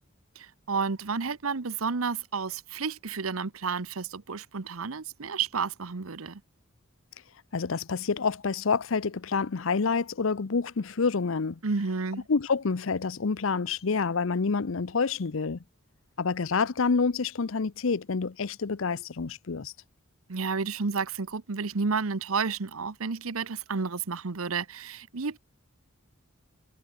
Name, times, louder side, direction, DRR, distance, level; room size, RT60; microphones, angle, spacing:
voice 1, 0.4-6.4 11.6-12.3 20.3-25.4, right 5 dB, 80° right, 0.9 m, -31 dB
voice 2, 7.5-11.6 12.3-15.6 16.2-19.7, left 4 dB, 65° left, 0.7 m, -28 dB
head